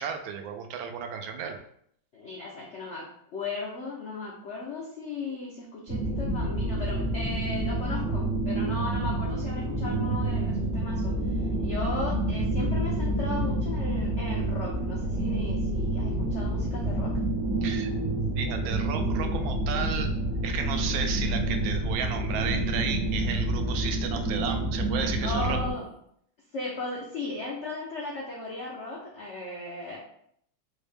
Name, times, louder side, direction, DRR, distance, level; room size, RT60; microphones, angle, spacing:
voice 1, 0.0-1.6 17.6-17.9 18.3-20.1 20.4-25.6, right 7 dB, 85° right, 5 dB, 1.3 m, -33 dB
voice 2, 2.1-3.1 3.3-17.1 25.2-25.9 26.5-30.0, left 3 dB, 80° left, -3 dB, 0.6 m, -36 dB
sound 1, 5.9-25.7, right 1 dB, 55° right, 0.8 m, -28 dB
4.5 x 2.1 x 3.3 m, 0.69 s
omnidirectional pair, 2.1 m